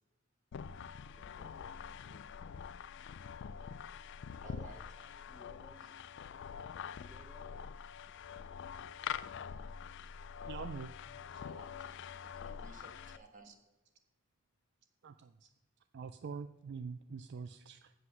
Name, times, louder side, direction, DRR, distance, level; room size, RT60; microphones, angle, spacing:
sound 1, 0.5-13.2, left 7 dB, 60° left, 0.3 m, -45 dB
voice 1, 1.1-2.3 3.1-3.2 5.3-5.8 6.8-9.0 9.8-9.9 11.6-11.9 12.8-12.9, equal, 15° right, 5 dB, 0.6 m, -63 dB
voice 2, 4.4-5.1 5.8-5.9 11.4-13.5, right 3 dB, 40° right, 3 dB, 1.6 m, -56 dB
voice 3, 10.5-10.9 11.3-11.4 13.4-13.5 15.0-15.5 15.9-17.9, right 5 dB, 60° right, 11 dB, 0.4 m, -45 dB
7.9 x 7.7 x 5.8 m, 1.1 s
head